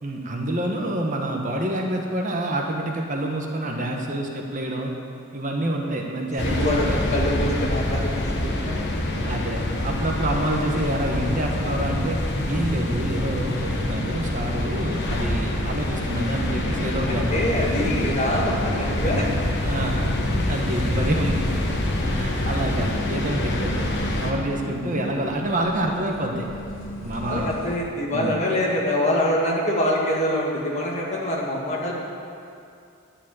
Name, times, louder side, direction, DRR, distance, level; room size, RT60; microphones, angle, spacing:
voice 1, 0.0-4.9 5.3-7.0 9.2-12.2 12.5-17.5 19.6-20.0 20.3-21.4 22.2-23.9 24.2-26.5 27.0-27.5 28.1-28.5, right 1 dB, 35° right, 1 dB, 1.1 m, -27 dB
sound 1, 6.4-24.3, left 1 dB, 55° left, 1.2 m, -26 dB
voice 2, 6.4-8.8 17.1-19.3 27.2-31.9, left 1 dB, 30° left, -3 dB, 1.9 m, -25 dB
sound 2, 12.2-27.8, equal, 70° left, 2.3 m, -38 dB
11.0 x 7.2 x 8.9 m, 2.5 s
head